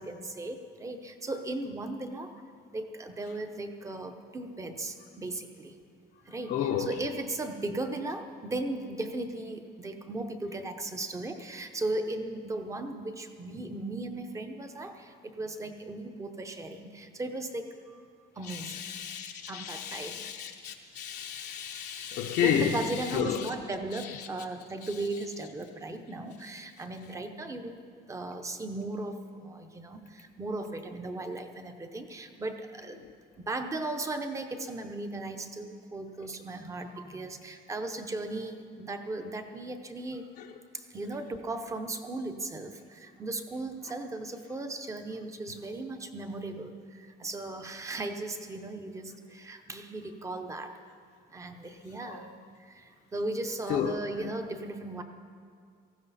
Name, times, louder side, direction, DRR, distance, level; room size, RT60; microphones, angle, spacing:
voice 1, 0.0-2.3 2.7-5.8 6.3-18.0 18.4-18.8 19.5-20.2 22.4-27.8 28.1-33.0 33.4-40.3 40.7-50.8 51.3-52.3 52.7-55.0, right 2 dB, 15° right, 0.8 m, -37 dB
voice 2, 6.5-6.9 18.5-23.5 52.0-52.2 53.7-54.3, left 8 dB, 65° left, 0.8 m, -32 dB
18.0 x 15.0 x 4.2 m
cardioid pair, 160°, 18 cm